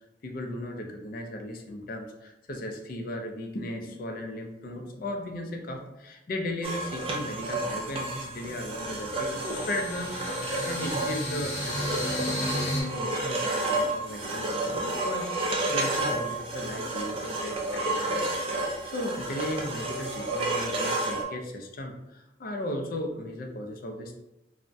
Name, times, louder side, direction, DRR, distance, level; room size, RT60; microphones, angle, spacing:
voice 1, 0.2-18.2 18.5-24.1, left 1 dB, 50° left, 3 dB, 0.4 m, -36 dB
sound 1, 6.6-21.2, right 2 dB, 30° right, 0.4 m, -31 dB
sound 2, 7.9-12.8, left 1 dB, 70° left, 0.8 m, -34 dB
3.3 x 2.1 x 2.6 m, 0.92 s
head